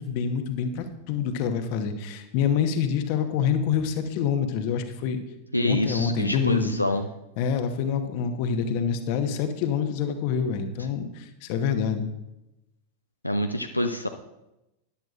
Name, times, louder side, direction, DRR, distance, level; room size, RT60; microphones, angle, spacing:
voice 1, 0.0-5.2 5.6-6.7 7.4-12.0, left 7 dB, 45° left, 7 dB, 1.1 m, -26 dB
voice 2, 5.5-7.1 13.2-14.1, left 1 dB, 90° left, 5 dB, 0.5 m, -26 dB
14.0 x 10.5 x 2.5 m, 0.94 s
figure-of-eight pair, 90°, 0 cm